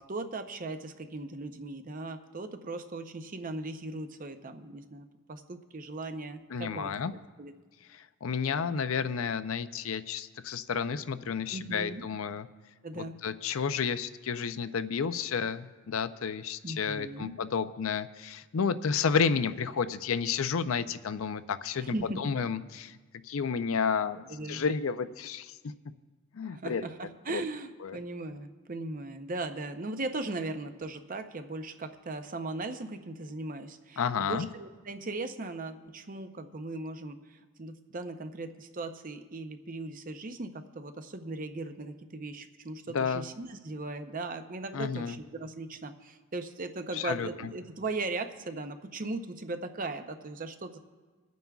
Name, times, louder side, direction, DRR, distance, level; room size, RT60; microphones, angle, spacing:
voice 1, 0.0-6.9 7.4-7.5 11.5-12.1 12.8-13.2 16.6-17.3 21.8-22.2 24.3-24.6 26.4-50.8, right 2 dB, 40° right, 8 dB, 0.7 m, -38 dB
voice 2, 6.5-7.1 8.2-12.5 13.0-23.0 23.2-25.6 26.3-26.8 27.3-27.4 27.8-28.0 34.0-34.5 42.9-43.2 44.7-45.2 46.9-47.3, left 6 dB, 75° left, 12 dB, 0.5 m, -31 dB
27.0 x 9.2 x 2.4 m, 1.3 s
head